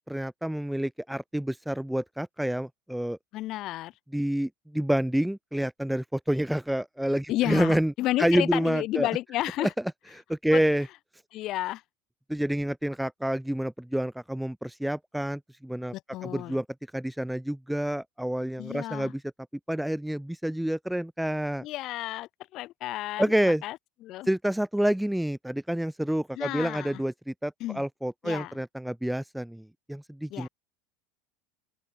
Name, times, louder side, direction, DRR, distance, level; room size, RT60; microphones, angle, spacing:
voice 1, 0.0-3.2 4.1-7.9 8.2-9.1 9.6-9.7 10.3-10.9 12.3-15.9 16.2-16.6 16.9-19.2 19.7-21.7 23.2-23.6 24.3-30.5, right 1 dB, ahead, 0.5 m, -28 dB
voice 2, 3.3-3.9 7.3-9.7 10.5-10.6 11.3-11.8 15.9-16.6 18.6-19.1 21.6-24.3 26.3-27.0 27.6-27.9 28.2-28.6 30.3-30.5, left 16 dB, 40° left, 1.4 m, -32 dB
open air
supercardioid pair, 170°, 0 cm